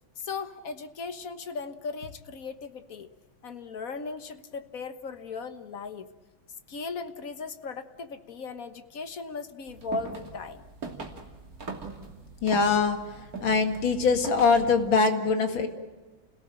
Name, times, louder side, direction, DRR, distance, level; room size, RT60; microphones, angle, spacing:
voice 1, 0.2-3.1 3.4-6.1 6.7-10.6, left 4 dB, 45° left, 10 dB, 1.5 m, -37 dB
sound 1, 9.7-14.9, right 3 dB, 45° right, 3.2 m, -40 dB
voice 2, 12.4-13.0 13.4-15.7, left 4 dB, 70° left, 7 dB, 2.7 m, -23 dB
29.5 x 17.5 x 8.9 m, 1.3 s
omnidirectional pair, 2.3 m